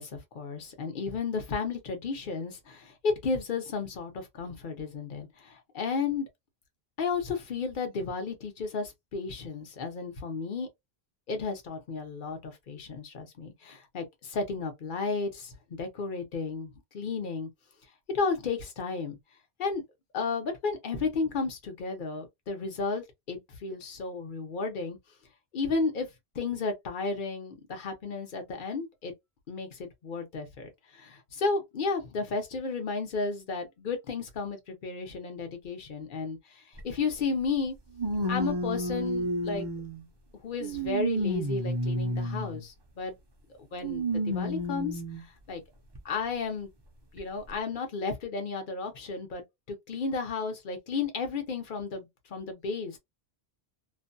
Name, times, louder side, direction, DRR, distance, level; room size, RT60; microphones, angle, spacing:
voice 1, 0.0-6.3 7.0-10.7 11.3-17.5 18.1-19.2 19.6-19.8 20.1-25.0 25.5-26.1 26.3-29.1 29.5-37.7 38.3-39.7 40.4-43.1 43.6-45.6 46.0-46.7 47.1-53.0, left 4 dB, 55° left, 0.9 m, -33 dB
sound 1, 36.8-36.9 38.0-40.0 40.6-42.6 43.8-45.2 45.9-46.0 47.2-47.3, equal, 35° right, 0.5 m, -31 dB
2.5 x 2.2 x 2.5 m
omnidirectional pair, 1.1 m